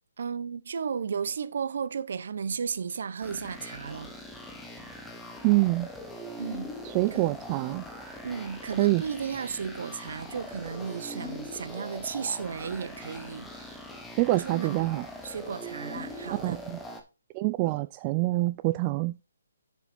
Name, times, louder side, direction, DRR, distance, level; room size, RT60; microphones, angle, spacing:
voice 1, 0.2-4.1 6.4-6.7 7.1-7.4 8.2-13.7 14.3-16.6, right 6 dB, 60° right, 0.8 m, -34 dB
sound 1, 3.2-17.0, left 1 dB, 5° left, 1.2 m, -42 dB
voice 2, 5.4-5.9 6.8-7.8 8.8-9.0 14.2-15.0 16.3-16.8 17.3-19.2, right 20 dB, 25° right, 0.3 m, -26 dB
7.0 x 6.9 x 4.3 m
hypercardioid pair, 145°, 0 cm